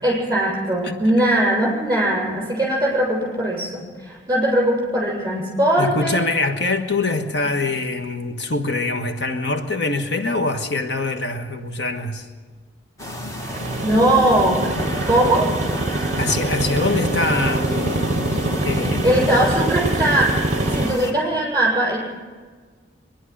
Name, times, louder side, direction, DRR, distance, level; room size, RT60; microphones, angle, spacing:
voice 1, 0.0-6.2 13.8-14.7 15.1-15.5 19.0-20.3 20.6-22.0, right 1 dB, 15° right, -2 dB, 7.4 m, -20 dB
voice 2, 5.8-12.3 16.2-19.5, left 3 dB, 65° left, 6 dB, 1.4 m, -24 dB
sound 1, 13.0-21.1, equal, 15° left, 1.8 m, -30 dB
sound 2, 13.4-20.9, right 2 dB, 40° right, 0.7 m, -24 dB
23.5 x 11.0 x 10.0 m, 1.5 s
head